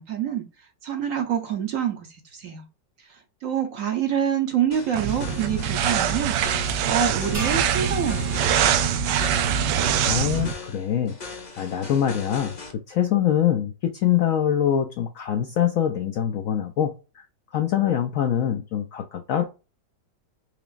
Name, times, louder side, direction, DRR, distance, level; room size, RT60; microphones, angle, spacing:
voice 1, 0.0-2.7 3.0-9.4, right 8 dB, 60° right, 0.9 m, -27 dB
sound 1, 4.7-12.7, left 4 dB, 35° left, 0.8 m, -40 dB
sound 2, 4.9-10.5, right 8 dB, 80° right, 1.2 m, -23 dB
sound 3, 7.3-9.9, right 2 dB, 40° right, 0.4 m, -37 dB
voice 2, 10.0-11.1 11.6-17.3 17.5-19.4, left 10 dB, 75° left, 0.8 m, -24 dB
4.7 x 2.9 x 2.5 m
omnidirectional pair, 1.9 m